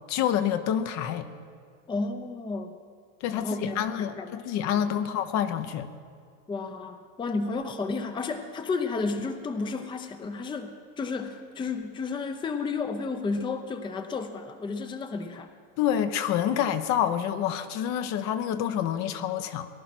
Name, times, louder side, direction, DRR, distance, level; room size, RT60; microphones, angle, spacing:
voice 1, 0.1-1.3 3.2-5.9 15.8-19.7, left 9 dB, 45° left, 10 dB, 0.9 m, -27 dB
voice 2, 1.9-2.7 3.3-4.3 4.7-4.9 6.5-15.5, left 4 dB, 10° left, 8 dB, 0.7 m, -32 dB
19.0 x 11.0 x 6.0 m, 2.2 s
supercardioid pair, 115°, 38 cm